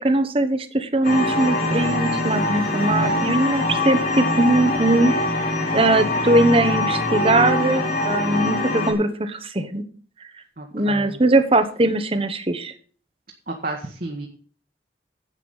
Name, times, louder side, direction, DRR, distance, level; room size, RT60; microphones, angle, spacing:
voice 1, 0.0-5.4 5.7-9.8 10.7-12.7, right 2 dB, 30° right, 10 dB, 1.2 m, -20 dB
sound 1, 1.0-8.9, left 2 dB, 50° left, 4.1 m, -23 dB
voice 2, 10.6-11.2 13.5-14.3, right 2 dB, 55° right, 1 dB, 1.7 m, -31 dB
11.0 x 8.4 x 5.5 m, 0.43 s
head